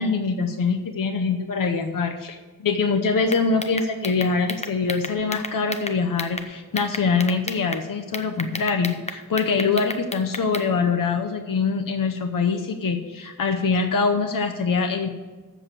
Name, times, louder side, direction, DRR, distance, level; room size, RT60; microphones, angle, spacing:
voice 1, 0.0-15.1, left 4 dB, 60° left, 5 dB, 0.7 m, -24 dB
sound 1, 3.3-6.5 6.8-7.8 8.1-10.7, left 2 dB, 20° left, 0.6 m, -32 dB
7.5 x 7.0 x 8.0 m, 1.3 s
wide cardioid pair, 110°, 38 cm